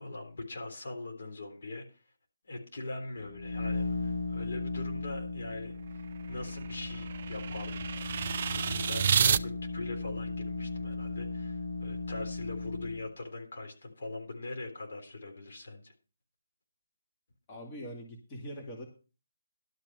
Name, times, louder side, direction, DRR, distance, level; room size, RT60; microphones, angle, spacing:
voice 1, 0.0-2.0 2.4-5.8 6.3-7.9 8.5-15.9, left 2 dB, 60° left, 3 dB, 3.6 m, -41 dB
sound 1, 3.2-13.1, left 3 dB, 85° left, 1.9 m, -37 dB
sound 2, 5.8-9.4, right 7 dB, 45° right, 0.4 m, -30 dB
voice 2, 17.5-18.8, equal, 25° left, 0 dB, 2.3 m, -42 dB
12.0 x 5.9 x 6.4 m, 0.33 s
figure-of-eight pair, 150°, 0 cm